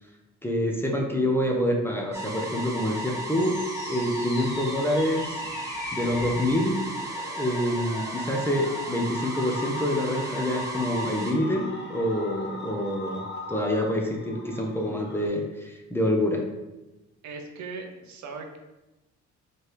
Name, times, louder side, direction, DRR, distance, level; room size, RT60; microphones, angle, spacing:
voice 1, 0.4-3.6 3.9-5.4 5.9-6.8 7.4-13.2 13.5-16.5, left 1 dB, 10° left, 0 dB, 0.7 m, -26 dB
sound 1, 2.1-11.3, right 1 dB, 10° right, 1.1 m, -35 dB
sound 2, 3.1-15.3, left 2 dB, 35° left, 0.8 m, -41 dB
voice 2, 17.2-18.6, right 4 dB, 70° right, 4 dB, 0.7 m, -38 dB
4.2 x 3.3 x 3.2 m, 1.0 s
cardioid pair, 90°, 30 cm